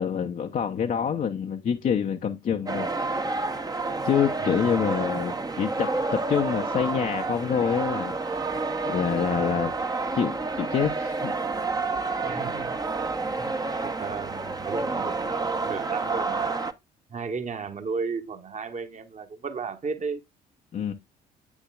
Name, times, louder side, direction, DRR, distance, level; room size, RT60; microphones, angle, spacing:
voice 1, 0.0-3.4 4.0-8.4 8.9-9.7 10.1-11.3 20.7-20.9, left 7 dB, 40° left, 0.8 m, -27 dB
sound 1, 2.7-16.7, right 3 dB, 15° right, 0.9 m, -29 dB
voice 2, 4.4-4.7 12.2-13.5 13.8-16.6 17.1-20.2, right 5 dB, 35° right, 1.4 m, -35 dB
9.0 x 7.1 x 2.4 m
figure-of-eight pair, 50°, 21 cm